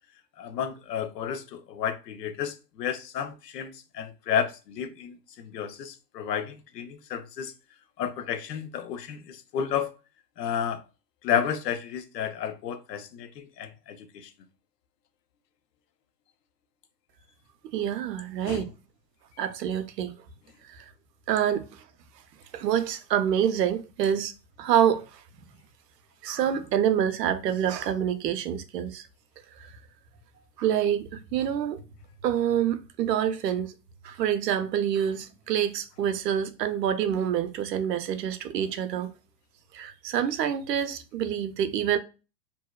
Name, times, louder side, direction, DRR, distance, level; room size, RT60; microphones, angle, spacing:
voice 1, 0.4-7.5 8.0-9.9 10.4-10.8 11.2-14.3 18.4-18.6, left 8 dB, 75° left, 0.6 m, -32 dB
voice 2, 17.6-18.7 19.4-20.2 20.7-20.9 21.3-21.7 22.5-24.3 24.6-25.2 26.2-29.1 29.6-29.7 30.6-31.8 32.2-33.7 34.0-39.1 39.7-42.0, right 9 dB, 80° right, 0.6 m, -27 dB
2.7 x 2.1 x 2.2 m
hypercardioid pair, 120°, 49 cm